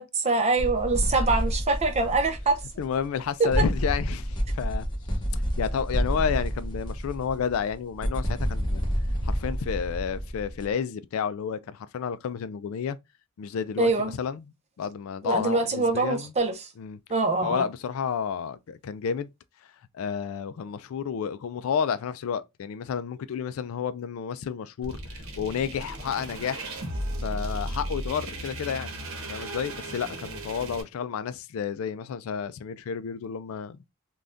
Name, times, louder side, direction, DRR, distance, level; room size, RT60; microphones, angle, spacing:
voice 1, 0.0-2.6 13.8-14.1 15.2-16.7 17.1-17.7, right 3 dB, 30° right, 0.6 m, -24 dB
sound 1, 0.6-3.2 3.5-10.7, equal, 20° left, 0.9 m, -29 dB
voice 2, 2.8-4.9 5.6-8.8 9.2-13.0 13.4-14.4 14.8-16.3 16.8-17.0 17.4-19.3 19.9-26.7 27.2-28.9 29.3-33.8, left 7 dB, 70° left, 0.3 m, -31 dB
sound 2, 24.8-30.8, right 1 dB, 70° right, 0.9 m, -35 dB
3.4 x 2.3 x 2.5 m
head